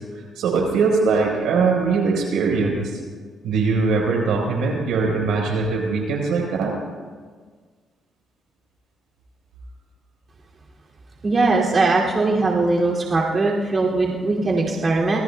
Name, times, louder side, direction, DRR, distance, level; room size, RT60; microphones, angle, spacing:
voice 1, 0.0-3.0 3.4-6.7, right 4 dB, 85° right, -1 dB, 4.6 m, -21 dB
voice 2, 11.2-15.2, right 3 dB, 40° right, -4 dB, 2.7 m, -20 dB
25.5 x 18.5 x 2.3 m, 1.5 s
cardioid pair, 90°, 0 cm